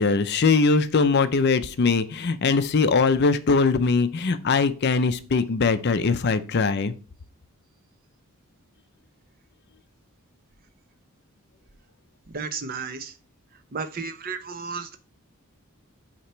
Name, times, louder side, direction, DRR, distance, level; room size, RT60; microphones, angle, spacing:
voice 1, 0.0-6.9, left 4 dB, 50° left, 0.5 m, -21 dB
voice 2, 12.3-13.1 13.7-15.0, right 5 dB, 40° right, 0.7 m, -33 dB
8.4 x 2.9 x 4.4 m
head